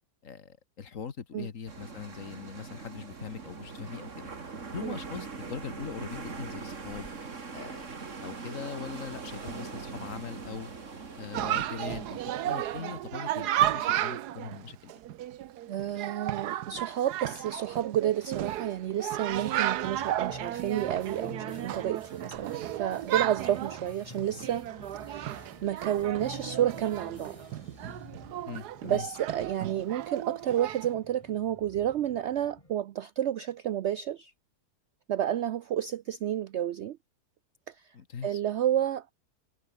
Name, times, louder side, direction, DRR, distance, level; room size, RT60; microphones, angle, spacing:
voice 1, 0.2-4.3 4.7-7.1 7.5-7.9 8.2-10.7 11.2-14.9 28.5-29.1 37.9-38.4, left 6 dB, 55° left, 1.8 m, -41 dB
sound 1, 1.7-12.8, right 4 dB, 50° right, 2.5 m, -42 dB
Chatter, 11.3-30.9, right 12 dB, 90° right, 1.3 m, -34 dB
voice 2, 15.7-24.7 25.0-27.4 28.8-34.3 35.1-37.0 37.7-37.8 38.2-39.1, right 11 dB, 70° right, 0.6 m, -30 dB
sound 2, 19.3-32.7, left 1 dB, 20° left, 3.8 m, -50 dB
omnidirectional pair, 1.7 m